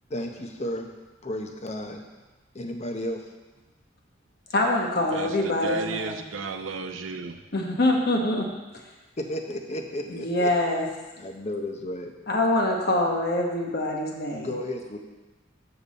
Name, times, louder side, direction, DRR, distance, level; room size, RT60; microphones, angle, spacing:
voice 1, 0.1-0.9 1.2-2.0 2.5-3.2 9.2-10.5 11.2-12.1 14.3-15.0, left 1 dB, 35° left, 4 dB, 0.8 m, -33 dB
voice 2, 4.5-6.2 7.5-8.5 10.1-10.9 12.3-14.5, left 1 dB, 55° left, 1 dB, 1.2 m, -24 dB
voice 3, 5.1-7.4, right 3 dB, 80° right, 7 dB, 0.6 m, -33 dB
7.0 x 6.9 x 4.1 m, 1.2 s
head